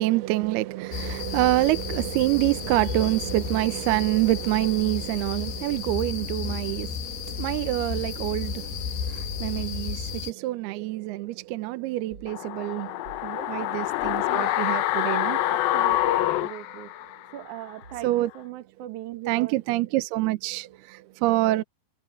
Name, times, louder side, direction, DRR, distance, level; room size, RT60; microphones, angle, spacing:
voice 1, 0.0-13.0 13.5-15.4 18.0-18.3 19.3-21.6, right 18 dB, 80° right, 2.4 m, -26 dB
sound 1, 0.9-10.3, left 7 dB, 65° left, 4.0 m, -33 dB
sound 2, 12.1-12.4 13.0-13.3 14.0-14.3 15.9-16.2 17.8-18.3, right 3 dB, 30° right, 3.8 m, -48 dB
sound 3, 12.3-17.4 17.7-17.8, left 14 dB, 90° left, 2.0 m, -26 dB
voice 2, 13.2-13.8 14.0-14.6 15.4-19.6, right 13 dB, 60° right, 2.3 m, -40 dB
omnidirectional pair, 5.4 m